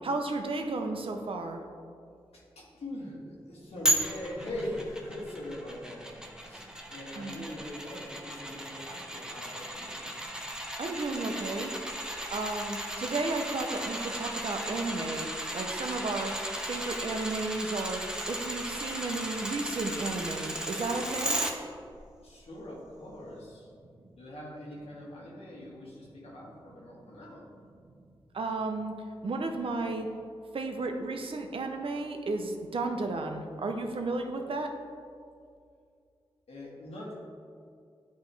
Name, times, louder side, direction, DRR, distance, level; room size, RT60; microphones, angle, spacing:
voice 1, 0.0-1.6 7.2-7.5 10.8-11.7 12.3-15.3 15.5-16.3 16.7-18.0 18.3-21.4 28.3-28.9 29.2-30.1 30.5-34.7, right 3 dB, 65° right, 4 dB, 0.7 m, -33 dB
voice 2, 2.3-6.0 6.4-10.0 22.2-23.7 24.1-27.5 36.5-37.2, left 1 dB, 80° left, -4 dB, 1.5 m, -42 dB
sound 1, 3.8-21.5 21.9-22.0, right 1 dB, 5° right, 0.8 m, -35 dB
9.3 x 3.1 x 3.3 m, 2.3 s
cardioid pair, 45°, 10 cm